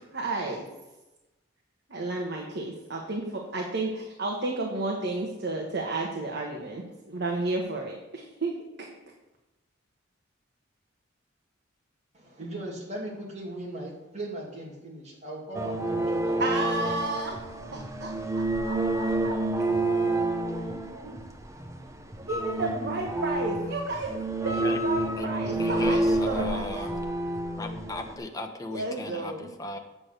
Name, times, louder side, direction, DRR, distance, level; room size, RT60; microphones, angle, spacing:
voice 1, 0.1-0.7 1.9-8.5 16.4-17.4 17.7-18.1 18.7-18.8 19.2-19.4 21.0-21.2 22.3-24.2 24.4-26.9 28.7-29.5, right 2 dB, 60° right, 0 dB, 1.2 m, -32 dB
voice 2, 12.1-16.7 17.7-17.8, right 1 dB, 35° right, -3 dB, 2.3 m, -38 dB
sound 1, 15.5-28.1, right 2 dB, 15° right, 0.8 m, -29 dB
voice 3, 25.6-27.0 27.6-29.8, left 2 dB, 20° left, 4 dB, 1.0 m, -36 dB
8.9 x 6.1 x 6.5 m, 1.0 s
head